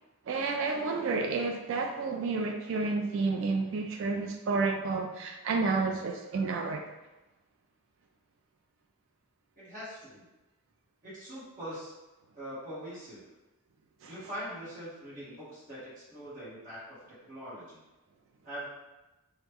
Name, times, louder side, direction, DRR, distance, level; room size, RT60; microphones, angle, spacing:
voice 1, 0.3-6.8 14.0-14.1, right 4 dB, 60° right, 4 dB, 0.3 m, -30 dB
voice 2, 9.6-10.3 11.0-11.9 12.4-13.2 14.0-17.8 18.4-18.7, equal, 35° right, -10 dB, 1.3 m, -42 dB
2.9 x 2.3 x 3.5 m, 1.1 s
head